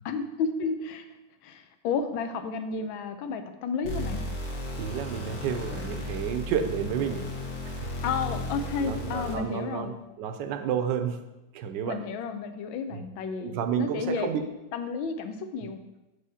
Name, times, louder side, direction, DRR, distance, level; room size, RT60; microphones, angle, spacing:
voice 1, 0.0-1.0 1.4-4.2 8.0-9.9 11.8-14.3 14.7-15.8, left 5 dB, 85° left, 8 dB, 1.4 m, -32 dB
sound 1, 3.8-9.6, left 1 dB, 55° left, 1.6 m, -35 dB
voice 2, 4.8-7.3 7.6-7.9 8.8-11.2 11.5-12.0 12.9-13.0 13.4-14.5 15.6-15.7, right 8 dB, 75° right, 7 dB, 1.2 m, -31 dB
7.5 x 4.9 x 4.2 m, 1.0 s
omnidirectional pair, 2.1 m